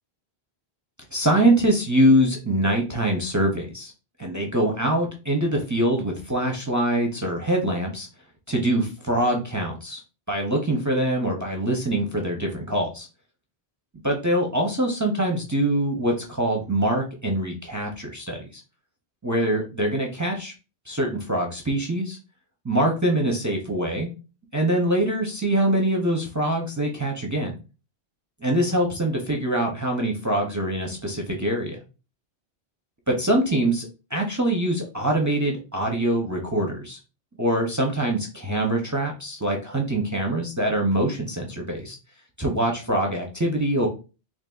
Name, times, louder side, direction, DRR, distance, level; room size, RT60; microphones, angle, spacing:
voice 1, 1.1-3.9 4.2-8.1 8.5-10.0 10.3-13.1 14.0-18.6 19.2-20.5 20.9-22.2 22.6-24.1 24.5-27.6 28.4-31.8 33.1-37.0 37.4-41.9 42.4-43.9, right 1 dB, 25° right, 1 dB, 0.4 m, -24 dB
3.9 x 3.0 x 2.3 m, 0.32 s
omnidirectional pair, 1.1 m